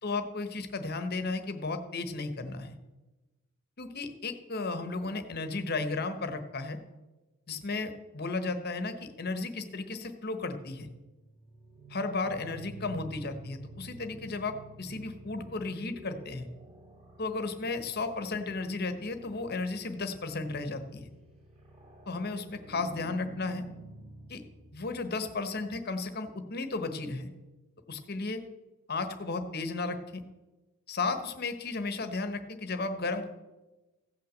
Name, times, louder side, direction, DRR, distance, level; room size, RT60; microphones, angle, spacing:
voice 1, 0.0-2.8 3.8-6.8 7.5-10.9 11.9-16.5 17.2-21.1 22.1-23.6 24.3-24.4 24.7-27.3 27.9-28.5 28.9-30.0 30.9-33.3, left 3 dB, 45° left, 8 dB, 1.1 m, -34 dB
sound 1, 10.9-25.5, right 2 dB, 25° right, 2.1 m, -50 dB
15.5 x 5.9 x 7.6 m, 1.1 s
head